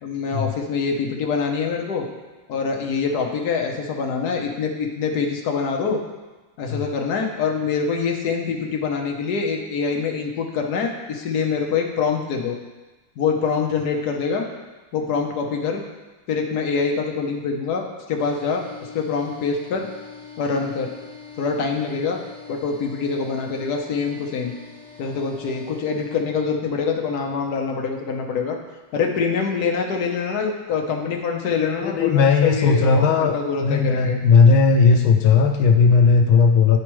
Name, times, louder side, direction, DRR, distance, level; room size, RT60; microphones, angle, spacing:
voice 1, 0.0-2.1 2.5-6.0 6.6-12.6 13.2-14.4 14.9-15.8 16.3-18.6 18.9-19.8 20.4-20.9 21.4-22.2 22.5-24.5 25.0-28.6 28.9-34.2, left 5 dB, 60° left, 2 dB, 1.2 m, -25 dB
sound 1, 18.2-26.2, left 6 dB, 40° left, 1.6 m, -43 dB
voice 2, 31.8-33.3 33.6-36.8, left 5 dB, 80° left, 4 dB, 1.4 m, -16 dB
10.5 x 4.8 x 3.1 m, 1.2 s
omnidirectional pair, 2.2 m